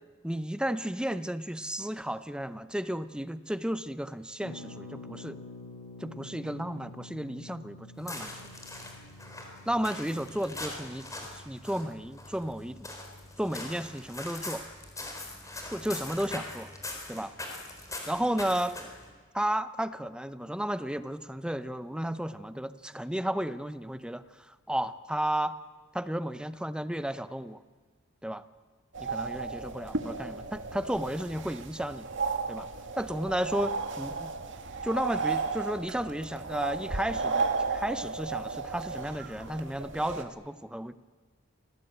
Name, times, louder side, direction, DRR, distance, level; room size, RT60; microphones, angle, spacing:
voice 1, 0.2-5.4 6.0-8.3 9.7-11.1 11.3-12.9 13.4-14.6 15.7-16.7 17.1-17.3 18.1-18.8 19.3-25.6 25.9-27.6 28.2-28.4 29.0-32.1 32.5-32.7 32.9-34.3 34.8-41.0, right 1 dB, 5° right, 13 dB, 0.8 m, -33 dB
Harp, 4.4-14.0 14.3-14.4 14.5-14.9, left 2 dB, 70° left, 6.6 m, -49 dB
sound 1, 7.9-19.1, left 2 dB, 15° left, 4.4 m, -42 dB
sound 2, 28.9-40.2, right 4 dB, 60° right, 2.2 m, -34 dB
27.5 x 19.0 x 8.9 m, 1.5 s
head